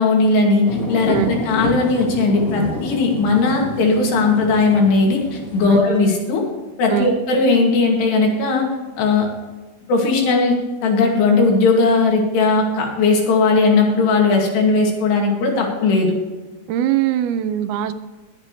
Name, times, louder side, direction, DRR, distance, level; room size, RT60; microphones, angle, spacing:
voice 1, 0.0-6.5 6.8-8.7 9.0-9.3 9.9-16.2, left 3 dB, 85° left, 0 dB, 4.5 m, -17 dB
sound 1, 0.7-5.8, left 2 dB, 50° left, 1.0 m, -29 dB
voice 2, 16.7-17.9, right 11 dB, 85° right, 9 dB, 2.5 m, -21 dB
22.0 x 7.6 x 3.2 m, 1.2 s
omnidirectional pair, 4.7 m